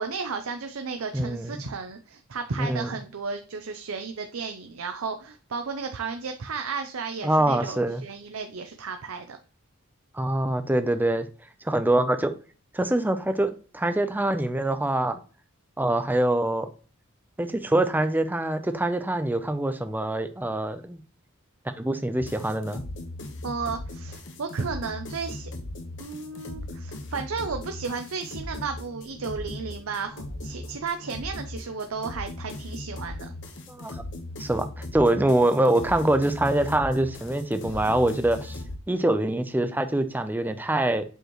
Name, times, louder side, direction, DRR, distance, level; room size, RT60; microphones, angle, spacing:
voice 1, 0.0-9.4 23.4-25.5 26.0-33.3, right 5 dB, 90° right, 0.6 m, -33 dB
voice 2, 1.1-1.6 2.6-2.9 7.2-8.0 10.1-11.3 11.6-12.3 12.7-15.2 15.8-16.7 17.4-21.0 21.8-22.8 33.7-34.0 34.4-34.7 34.9-38.6 38.9-41.0, right 1 dB, 10° right, 0.6 m, -24 dB
sound 1, 22.2-38.8, left 2 dB, 60° left, 1.1 m, -38 dB
7.9 x 4.5 x 3.0 m
head